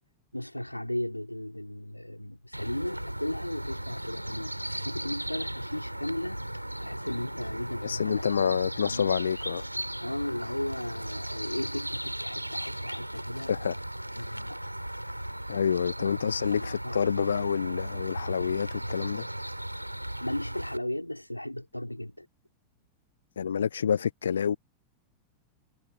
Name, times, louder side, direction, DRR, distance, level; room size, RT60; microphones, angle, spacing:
voice 1, 0.3-4.6 4.8-6.5 6.8-8.6 8.8-9.0 10.0-13.5 14.2-14.6 16.0-17.0 20.2-22.3, left 1 dB, 85° left, 4.7 m, -36 dB
sound 1, 2.5-20.8, right 1 dB, 90° right, 7.0 m, -36 dB
voice 2, 7.8-9.6 13.5-13.8 15.5-19.3 23.4-24.6, left 7 dB, 70° left, 1.0 m, -28 dB
figure-of-eight pair, 90°, 0 cm